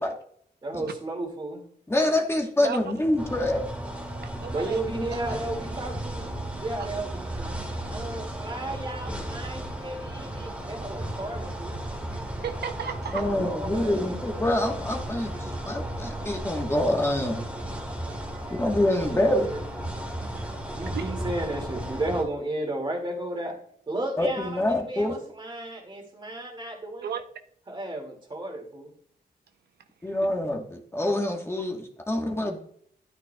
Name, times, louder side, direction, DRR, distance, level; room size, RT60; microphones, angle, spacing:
voice 1, 0.6-1.6 4.5-6.3 6.6-7.5 7.9-11.8 13.2-14.2 19.0-19.6 20.8-23.6 23.9-27.1 27.7-28.9, right 2 dB, 30° right, 2 dB, 2.2 m, -34 dB
voice 2, 1.9-3.6 13.1-17.4 18.6-19.5 24.2-25.2 30.0-32.6, left 1 dB, 15° left, 2 dB, 1.2 m, -26 dB
voice 3, 2.6-2.9 4.2-4.8 5.1-5.4 5.7-5.8 6.2-6.3 12.1-13.3 18.4-18.6 20.8-21.0 27.0-27.2 30.0-30.2, right 8 dB, 80° right, 7 dB, 0.6 m, -35 dB
sound 1, 3.2-22.2, right 1 dB, 10° right, 1.7 m, -35 dB
11.5 x 9.4 x 2.3 m, 0.63 s
wide cardioid pair, 145°, 17 cm